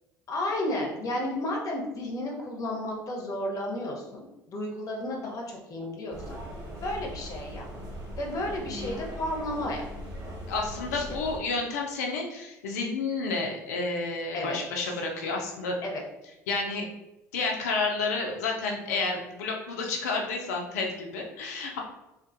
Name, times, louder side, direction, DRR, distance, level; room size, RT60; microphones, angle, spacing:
voice 1, 0.3-6.4 6.8-7.7 8.2-9.8 10.9-11.0 14.3-14.6 15.8-16.0, left 1 dB, 45° left, 0 dB, 0.8 m, -32 dB
sound 1, 6.1-11.4, equal, 45° right, 1.2 m, -39 dB
voice 2, 10.5-15.8 16.5-16.9 17.3-21.8, left 3 dB, 80° left, 1 dB, 0.4 m, -30 dB
2.4 x 2.3 x 2.5 m, 0.94 s
hypercardioid pair, 65°, 8 cm